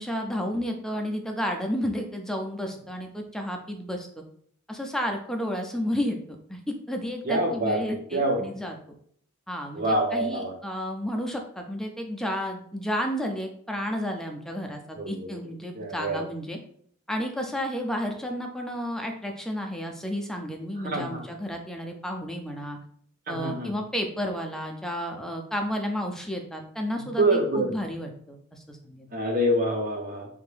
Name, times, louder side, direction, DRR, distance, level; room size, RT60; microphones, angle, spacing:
voice 1, 0.0-4.2 4.7-6.2 6.5-8.8 9.5-16.6 17.1-22.8 23.3-29.1, equal, ahead, 3 dB, 0.4 m, -32 dB
voice 2, 7.2-8.4 9.7-10.5 14.9-15.3 15.7-16.2 20.8-21.2 23.3-23.7 27.2-27.7 29.1-30.3, right 1 dB, 45° right, 2 dB, 0.7 m, -26 dB
3.5 x 2.6 x 3.3 m, 0.62 s
head